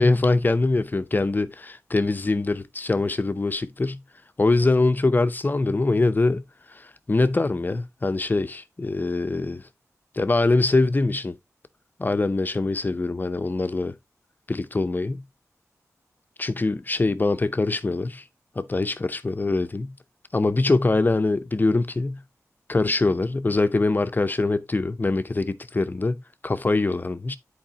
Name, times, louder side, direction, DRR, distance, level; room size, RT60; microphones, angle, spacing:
voice 1, 0.0-4.0 4.4-6.4 6.7-9.6 10.1-11.4 12.0-13.9 14.5-15.2 16.4-18.2 18.6-19.9 20.3-22.2 22.7-27.4, left 3 dB, 35° left, 0.6 m, -23 dB
10.0 x 4.7 x 2.8 m
wide cardioid pair, 100°, 6 cm